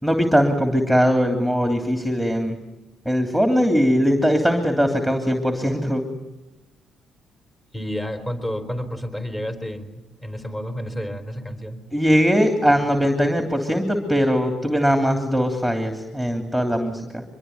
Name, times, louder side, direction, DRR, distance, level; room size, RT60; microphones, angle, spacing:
voice 1, 0.0-2.6 3.0-6.0 11.9-17.2, equal, 5° left, 4 dB, 3.0 m, -20 dB
voice 2, 7.7-11.8, equal, 20° left, 7 dB, 4.5 m, -30 dB
24.5 x 22.0 x 9.5 m, 0.97 s
cardioid pair, 90°, 0 cm